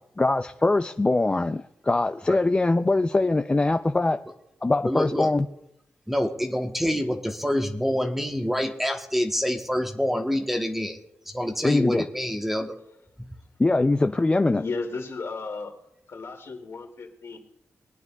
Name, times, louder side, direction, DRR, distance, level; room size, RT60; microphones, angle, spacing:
voice 1, 0.2-4.2 4.6-5.5 11.6-12.1 13.6-14.6, left 2 dB, 20° left, 7 dB, 0.4 m, -22 dB
voice 2, 4.8-5.3 6.1-11.0 11.3-12.7, equal, 5° right, 4 dB, 1.1 m, -26 dB
voice 3, 14.6-15.7 16.1-17.4, left 4 dB, 60° left, 1 dB, 2.4 m, -34 dB
22.5 x 9.4 x 2.3 m, 0.81 s
cardioid pair, 90°, 5 cm